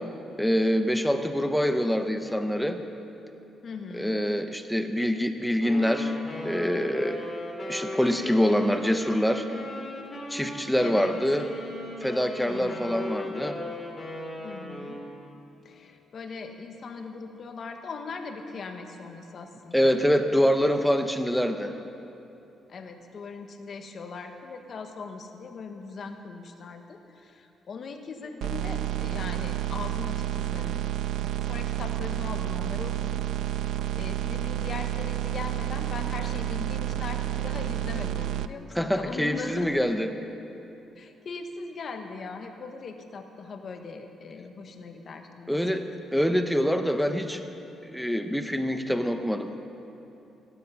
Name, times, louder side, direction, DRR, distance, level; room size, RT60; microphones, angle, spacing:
voice 1, 0.4-2.8 3.9-6.2 6.4-7.3 7.7-9.5 10.3-11.5 12.0-13.6 19.7-21.7 38.7-40.1 45.5-47.4 47.9-49.5, equal, ahead, 7 dB, 0.7 m, -25 dB
voice 2, 3.6-4.2 10.8-11.1 12.4-12.9 14.4-15.0 15.6-20.5 22.7-30.8 31.4-39.7 41.0-45.5, left 4 dB, 45° left, 5 dB, 1.3 m, -40 dB
Wind instrument woodwind instrument, 5.6-15.2, left 1 dB, 20° left, 2.6 m, -37 dB
sound 1, 28.4-38.5, right 13 dB, 85° right, 0.4 m, -30 dB
17.5 x 11.5 x 5.8 m, 3.0 s
cardioid pair, 125°, 0 cm